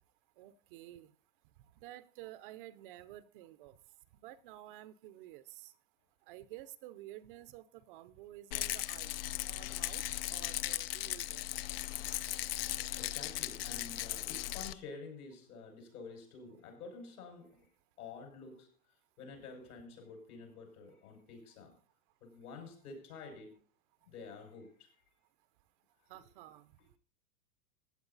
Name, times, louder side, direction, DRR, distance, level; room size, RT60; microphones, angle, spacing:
voice 1, 0.4-1.1 1.8-3.8 4.2-5.7 6.3-10.0 10.3-11.5 26.1-26.7, right 14 dB, 35° right, 0.7 m, -51 dB
Rattle, 8.5-14.7, left 14 dB, 40° left, 0.5 m, -38 dB
voice 2, 12.9-17.7 18.0-21.8 22.2-23.6 24.0-25.0 26.1-26.2 26.8-26.9, left 4 dB, 75° left, 5.9 m, -50 dB
15.5 x 9.1 x 4.0 m
supercardioid pair, 150°, 45 cm